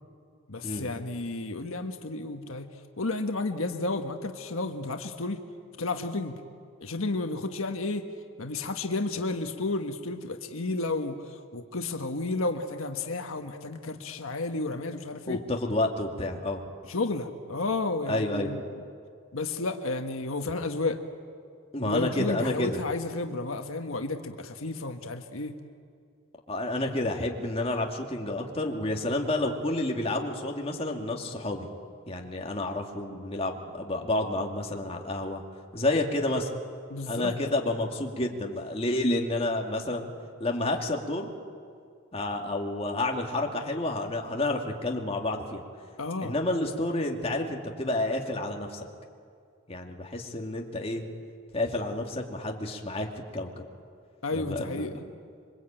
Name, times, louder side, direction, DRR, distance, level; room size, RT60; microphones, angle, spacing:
voice 1, 0.5-2.7 3.0-5.4 5.8-6.4 6.8-8.1 8.4-15.4 16.9-18.6 19.3-21.0 21.8-25.6 36.9-37.3 46.0-46.3 54.2-54.9, left 3 dB, 80° left, 5 dB, 1.4 m, -32 dB
voice 2, 15.3-16.6 18.1-18.5 21.7-22.8 26.5-31.7 32.1-35.4 35.7-36.5 37.1-40.1 40.4-41.3 42.1-45.6 46.2-48.9 49.7-51.0 51.5-53.1 53.3-53.6 54.3-55.0, left 2 dB, 30° left, 1 dB, 2.5 m, -30 dB
26.5 x 24.5 x 9.0 m, 2.3 s
head